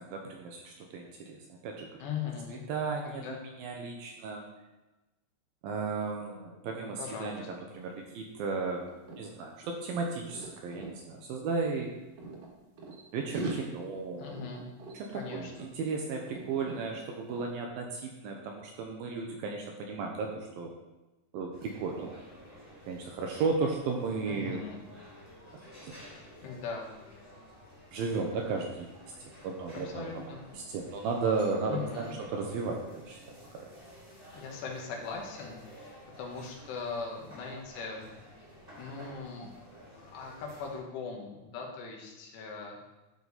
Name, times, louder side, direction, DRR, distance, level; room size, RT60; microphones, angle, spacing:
voice 1, 0.0-1.9 2.5-4.5 5.6-11.9 13.1-14.3 14.9-20.7 21.3-22.1 22.9-24.6 25.8-25.9 27.9-30.2 30.5-33.7, right 4 dB, 75° right, 1 dB, 2.3 m, -35 dB
voice 2, 2.0-2.6 3.0-3.5 7.0-7.4 14.2-14.7 15.1-15.7 24.3-24.8 26.4-26.9 29.7-30.4 31.7-32.2 34.4-38.1 38.8-39.5 40.1-42.8, left 5 dB, 80° left, 0 dB, 3.4 m, -40 dB
sound 1, 7.7-7.9 8.1-11.0 11.8-13.0 13.3-15.9 16.1-16.8 17.3-17.5, right 3 dB, 55° right, 2.4 m, -42 dB
sound 2, 21.5-40.8, equal, 10° right, 1.6 m, -52 dB
12.5 x 4.8 x 4.0 m, 1.1 s
omnidirectional pair, 4.8 m